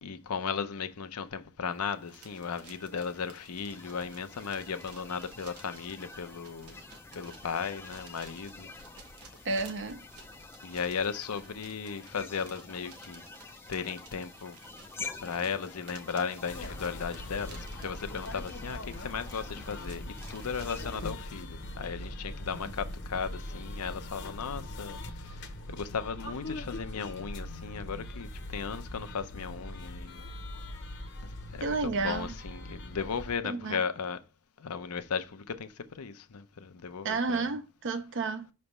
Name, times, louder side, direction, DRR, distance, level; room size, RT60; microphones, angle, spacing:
voice 1, 0.0-6.8 7.1-8.7 10.6-13.2 13.7-14.6 15.2-30.3 31.2-34.2 34.6-37.5, left 6 dB, 90° left, 0.7 m, -36 dB
sound 1, 1.8-21.0, left 4 dB, 10° left, 0.4 m, -48 dB
sound 2, 2.1-21.1, right 3 dB, 90° right, 1.1 m, -55 dB
voice 2, 9.4-10.0 31.6-32.3 33.4-33.8 37.0-38.5, right 3 dB, 55° right, 0.6 m, -31 dB
sound 3, 16.5-33.4, left 1 dB, 55° left, 0.8 m, -41 dB
5.9 x 3.3 x 5.3 m
head